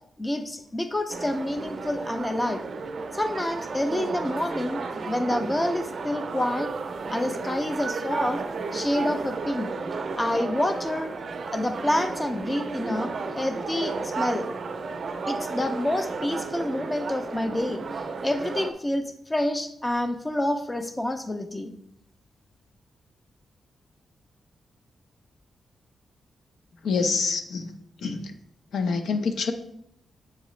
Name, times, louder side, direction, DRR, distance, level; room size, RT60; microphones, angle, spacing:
voice 1, 0.2-2.6 3.1-6.7 7.1-8.4 8.7-9.7 10.2-11.1 11.5-14.5 15.3-17.8 18.2-21.7, left 1 dB, 15° left, 8 dB, 0.4 m, -28 dB
sound 1, 1.1-18.7, right 4 dB, 45° right, 0.4 m, -33 dB
voice 2, 26.8-27.7 28.0-28.3 28.7-29.5, left 4 dB, 80° left, 7 dB, 0.7 m, -26 dB
8.0 x 4.8 x 3.1 m, 0.75 s
wide cardioid pair, 155°, 0 cm